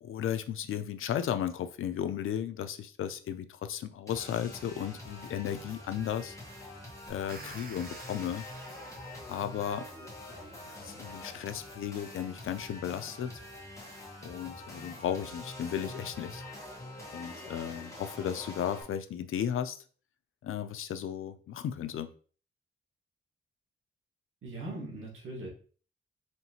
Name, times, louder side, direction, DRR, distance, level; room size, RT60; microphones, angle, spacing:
voice 1, 0.0-6.4 7.1-8.4 9.2-9.9 10.7-13.3 14.2-16.4 17.1-19.8 20.4-22.1, left 9 dB, 75° left, 10 dB, 0.4 m, -35 dB
sound 1, 4.1-18.8, left 1 dB, 15° left, 1.3 m, -45 dB
sound 2, 7.1-10.3, right 3 dB, 45° right, 0.8 m, -51 dB
voice 2, 24.4-25.5, right 2 dB, 75° right, -4 dB, 1.8 m, -40 dB
4.4 x 3.1 x 2.8 m, 0.41 s
wide cardioid pair, 115°, 21 cm